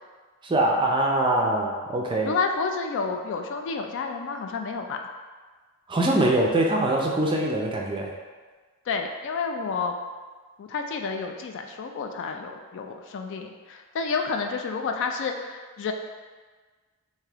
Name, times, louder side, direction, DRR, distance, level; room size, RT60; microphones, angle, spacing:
voice 1, 0.4-2.3 5.9-8.1, right 1 dB, 20° right, -1 dB, 0.4 m, -23 dB
voice 2, 2.2-5.0 8.9-9.9 10.6-15.9, left 4 dB, 55° left, 4 dB, 0.3 m, -30 dB
3.4 x 2.7 x 3.4 m, 1.4 s
head